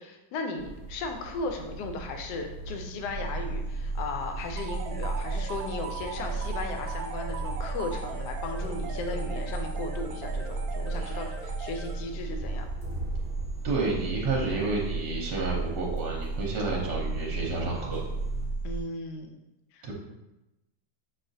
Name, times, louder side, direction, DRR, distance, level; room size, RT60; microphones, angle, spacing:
voice 1, 0.0-12.7 18.6-19.3 19.7-19.9, left 3 dB, 70° left, 4 dB, 1.1 m, -36 dB
sound 1, 0.6-18.5, right 2 dB, 45° right, 1.0 m, -42 dB
sound 2, 3.1-18.8, right 3 dB, 40° left, 0.9 m, -34 dB
sound 3, 4.6-12.3, right 5 dB, 85° right, 0.8 m, -41 dB
voice 2, 13.6-18.0 19.8-19.9, right 3 dB, 65° right, -3 dB, 1.2 m, -30 dB
6.2 x 2.4 x 2.6 m, 0.96 s
omnidirectional pair, 2.1 m